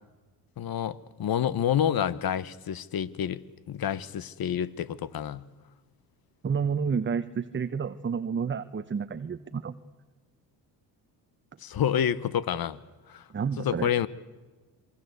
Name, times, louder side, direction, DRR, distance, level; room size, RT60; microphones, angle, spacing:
voice 1, 0.6-3.4 3.7-5.4 11.6-12.8 13.1-13.2 13.6-14.1, left 9 dB, 50° left, 19 dB, 1.2 m, -28 dB
voice 2, 6.4-9.8 13.3-13.9, right 6 dB, 25° right, 11 dB, 0.9 m, -30 dB
27.5 x 21.5 x 8.2 m, 1.2 s
supercardioid pair, 75°, 47 cm